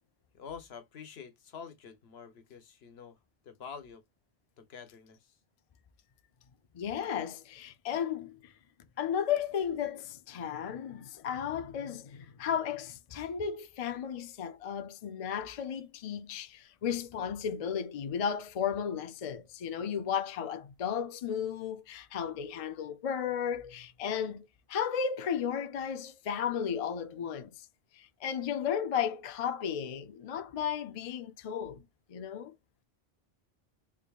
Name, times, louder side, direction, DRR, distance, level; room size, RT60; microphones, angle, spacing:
voice 1, 0.3-3.2 3.4-4.0 4.6-5.3, left 6 dB, 75° left, 1.1 m, -47 dB
voice 2, 6.7-8.5 9.0-27.5 27.9-31.8 32.1-32.5, left 8 dB, 50° left, 0.4 m, -34 dB
3.7 x 3.4 x 2.3 m
omnidirectional pair, 1.1 m